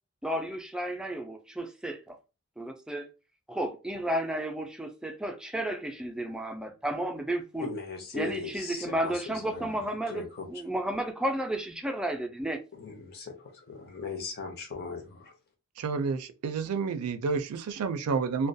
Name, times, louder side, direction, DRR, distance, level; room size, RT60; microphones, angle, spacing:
voice 1, 0.2-2.2 2.6-3.1 3.5-7.7 8.1-12.6, right 1 dB, 5° right, 0.3 m, -32 dB
voice 2, 7.6-9.1 9.4-9.6 10.1-10.5 12.8-13.3 13.7-15.3, left 4 dB, 45° left, 0.6 m, -38 dB
voice 3, 15.8-18.5, right 5 dB, 85° right, 0.4 m, -30 dB
2.3 x 2.1 x 2.6 m
head